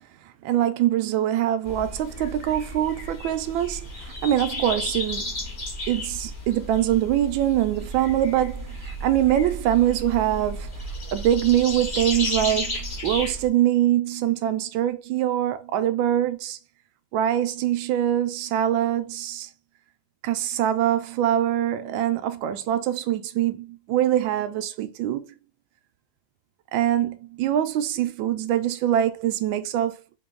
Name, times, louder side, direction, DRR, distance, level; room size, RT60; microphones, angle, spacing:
voice 1, 0.4-5.3 5.9-10.7 11.1-16.6 17.1-19.5 20.2-25.2 26.7-29.9, right 11 dB, 85° right, 1.3 m, -23 dB
sound 1, 1.6-13.5, left 1 dB, 35° left, 0.7 m, -33 dB
3.4 x 2.9 x 3.6 m
omnidirectional pair, 2.1 m